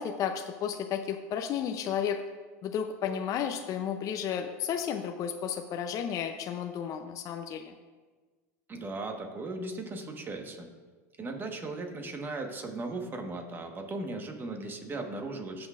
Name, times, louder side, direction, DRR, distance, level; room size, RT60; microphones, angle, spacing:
voice 1, 0.0-2.2 2.6-7.7, left 8 dB, 40° left, 5 dB, 0.5 m, -32 dB
voice 2, 8.7-10.7 11.2-15.7, right 2 dB, 25° right, 4 dB, 1.3 m, -37 dB
17.0 x 6.0 x 2.5 m, 1.4 s
hypercardioid pair, 105°, 9 cm